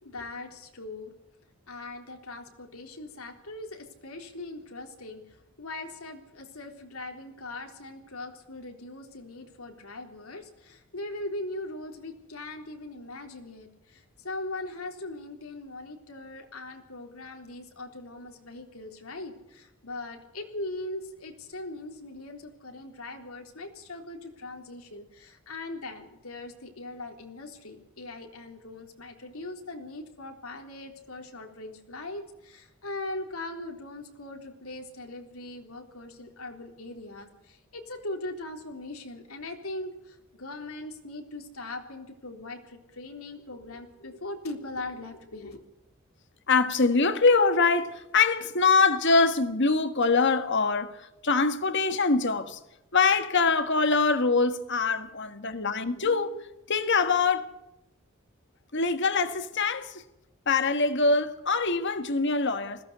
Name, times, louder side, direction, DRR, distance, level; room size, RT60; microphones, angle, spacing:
voice 1, 0.0-1.1 1.7-45.6, left 2 dB, 90° left, 3.7 m, -40 dB
voice 2, 46.5-51.0 51.2-52.6 52.9-56.3 56.7-57.5 58.7-59.9 60.5-62.8, left 4 dB, 55° left, 1.7 m, -24 dB
20.5 x 16.0 x 8.2 m
head